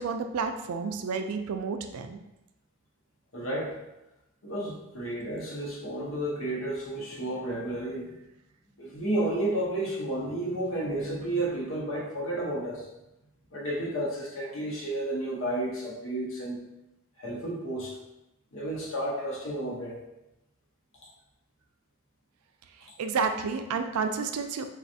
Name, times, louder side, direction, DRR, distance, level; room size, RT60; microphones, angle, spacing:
voice 1, 0.0-2.2 23.0-24.6, right 5 dB, 85° right, 6 dB, 0.4 m, -30 dB
voice 2, 3.3-3.8 4.4-8.1 8.8-12.9 13.5-16.6 17.2-18.0 18.5-20.0, right 1 dB, 60° left, -3 dB, 0.8 m, -32 dB
4.2 x 2.3 x 2.6 m, 0.92 s
head